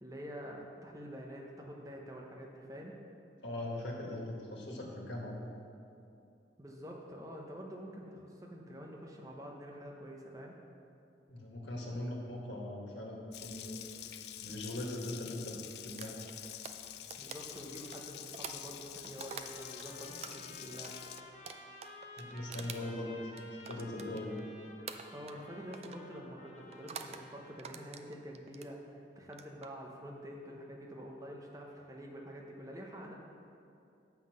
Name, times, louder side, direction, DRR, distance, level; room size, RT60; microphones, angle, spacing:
voice 1, 0.0-3.0 6.6-10.6 17.2-21.0 25.1-33.2, equal, 20° right, -1 dB, 0.8 m, -47 dB
voice 2, 3.4-5.4 11.3-13.8 14.4-16.2 22.2-24.4, left 1 dB, 80° left, -2 dB, 1.5 m, -40 dB
Water tap faucet, 13.3-21.2, left 11 dB, 65° left, 0.4 m, -47 dB
sound 1, 16.0-19.9 20.2-24.5 24.9-25.5 25.7-26.1 26.7-27.2 27.6-28.7 29.2-29.7, right 6 dB, 35° right, 0.4 m, -47 dB
sound 2, 19.3-27.6, left 2 dB, 40° left, 0.8 m, -54 dB
7.6 x 5.8 x 6.4 m, 2.6 s
head